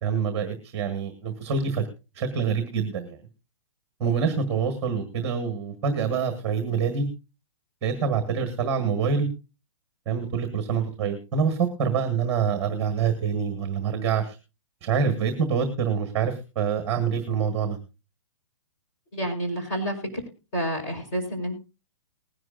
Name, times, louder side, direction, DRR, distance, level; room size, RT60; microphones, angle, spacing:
voice 1, 0.0-1.9 2.1-3.2 4.0-7.1 7.8-9.3 10.0-14.4 14.8-17.8, right 6 dB, 15° right, 7 dB, 1.4 m, -26 dB
voice 2, 19.1-20.1 20.5-21.6, right 1 dB, 30° left, 3 dB, 4.7 m, -29 dB
20.0 x 11.0 x 2.5 m, 0.30 s
hypercardioid pair, 175°, 16 cm